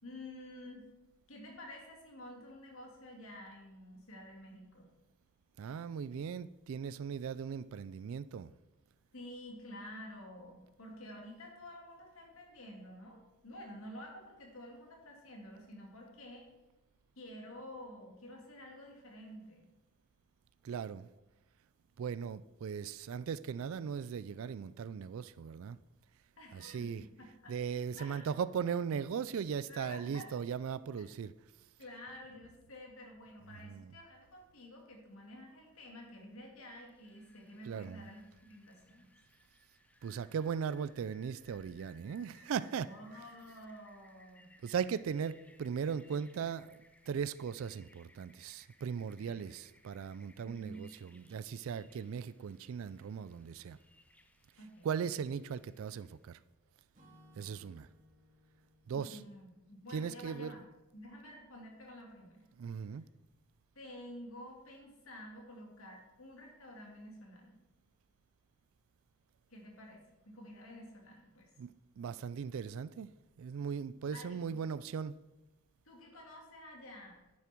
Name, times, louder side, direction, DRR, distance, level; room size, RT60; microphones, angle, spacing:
voice 1, 0.0-0.9 1.3-4.9 9.1-16.5 17.2-19.7 26.4-27.5 28.0-28.3 29.7-30.3 31.0-31.1 31.8-39.1 42.8-44.5 49.2-49.5 50.4-50.9 54.6-54.9 58.9-60.6 60.9-62.4 63.7-67.6 69.5-71.5 74.1-74.6 75.8-77.2, left 1 dB, 65° left, 2.8 m, -50 dB
voice 2, 5.6-8.5 20.6-21.1 22.0-25.8 26.5-31.3 33.5-34.0 37.6-38.0 40.0-43.3 44.6-53.8 54.6-56.4 57.4-57.9 58.9-59.2 59.9-60.6 62.6-63.0 71.6-73.1 73.4-75.1, right 7 dB, 65° right, 0.3 m, -38 dB
Rain, 36.8-56.2, left 1 dB, 5° left, 0.6 m, -66 dB
Acoustic guitar / Strum, 56.9-60.9, left 1 dB, 35° right, 2.5 m, -65 dB
10.5 x 9.7 x 4.5 m
head